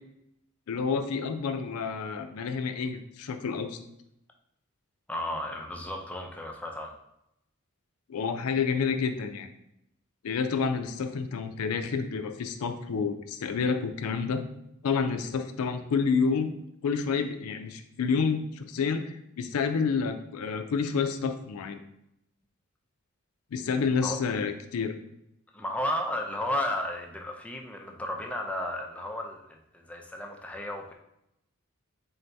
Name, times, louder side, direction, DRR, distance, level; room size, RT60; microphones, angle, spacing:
voice 1, 0.7-3.8 8.1-9.5 10.2-14.4 14.8-16.5 16.8-21.8 23.5-24.9, left 5 dB, 90° left, 8 dB, 0.4 m, -29 dB
voice 2, 5.1-6.9 24.0-24.2 25.5-30.9, left 1 dB, 5° left, 1 dB, 0.4 m, -33 dB
3.8 x 2.7 x 3.3 m, 0.82 s
head